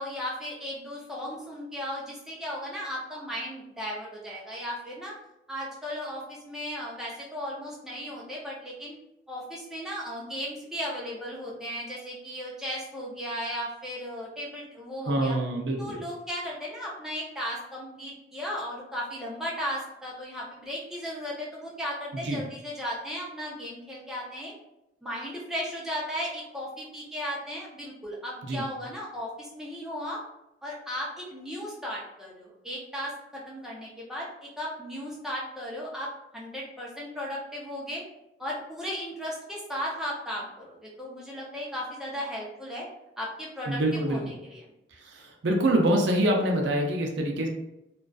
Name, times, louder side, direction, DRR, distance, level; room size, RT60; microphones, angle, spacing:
voice 1, 0.0-5.1 5.5-8.9 9.3-15.4 15.8-24.5 25.0-30.2 30.6-38.0 38.4-42.9 43.2-44.6, equal, 5° right, -5 dB, 0.5 m, -36 dB
voice 2, 15.1-16.0 22.2-22.4 28.4-28.6 43.7-44.4 45.0-47.5, right 1 dB, 80° right, 2 dB, 0.5 m, -25 dB
2.3 x 2.3 x 2.3 m, 0.86 s
head